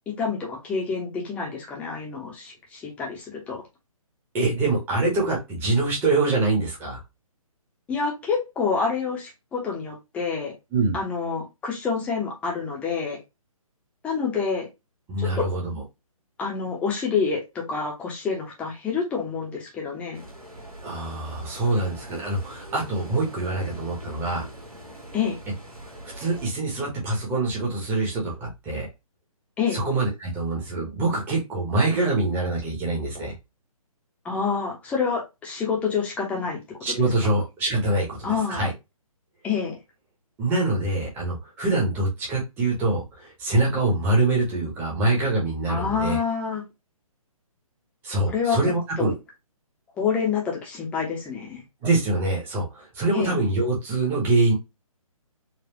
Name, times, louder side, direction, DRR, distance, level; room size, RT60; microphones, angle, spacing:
voice 1, 0.2-3.6 7.9-10.5 10.9-13.2 14.0-14.7 15.4-15.5 16.4-20.2 25.1-25.4 29.6-29.8 34.2-36.8 38.2-38.7 39.4-39.8 45.7-46.6 48.3-48.6 49.0-49.1 50.0-51.6 53.1-53.3, left 5 dB, 5° left, -1 dB, 0.7 m, -27 dB
voice 2, 4.3-7.0 10.7-11.0 15.1-15.8 20.8-24.5 26.1-28.9 29.7-33.3 36.8-38.7 40.4-46.2 48.0-49.1 51.8-54.5, right 2 dB, 10° right, -2 dB, 1.0 m, -24 dB
sound 1, 20.1-26.5, right 1 dB, 85° right, 1.7 m, -42 dB
4.1 x 2.4 x 2.9 m, 0.23 s
figure-of-eight pair, 140°, 19 cm